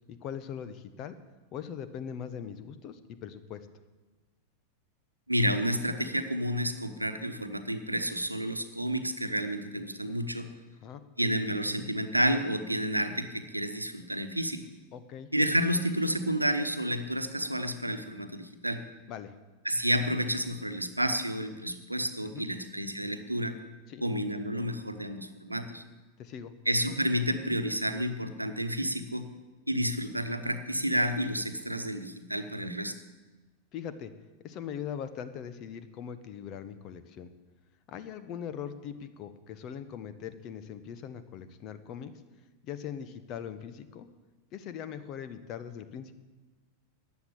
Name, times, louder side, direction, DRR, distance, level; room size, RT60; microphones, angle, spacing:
voice 1, 0.1-1.1 1.5-3.7 10.8-11.0 14.9-15.3 19.1-19.3 22.2-22.5 23.9-24.1 26.2-26.5 33.7-34.1 34.4-37.3 37.9-42.1 42.6-44.1 44.5-46.1, left 8 dB, 35° left, 12 dB, 1.2 m, -41 dB
voice 2, 5.3-10.5 11.2-14.6 15.3-18.8 19.6-23.6 24.0-25.8 26.7-29.3 29.7-32.9, equal, 85° right, 8 dB, 1.1 m, -30 dB
14.5 x 9.6 x 8.6 m, 1.2 s
figure-of-eight pair, 90°, 0 cm